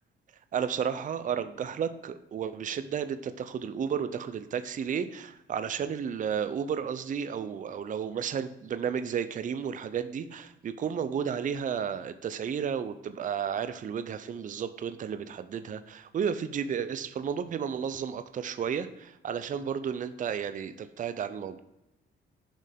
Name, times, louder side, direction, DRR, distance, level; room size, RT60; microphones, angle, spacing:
voice 1, 0.5-21.6, right 7 dB, 40° right, 11 dB, 0.5 m, -32 dB
7.3 x 5.4 x 3.5 m, 0.94 s
cardioid pair, 90°, 20 cm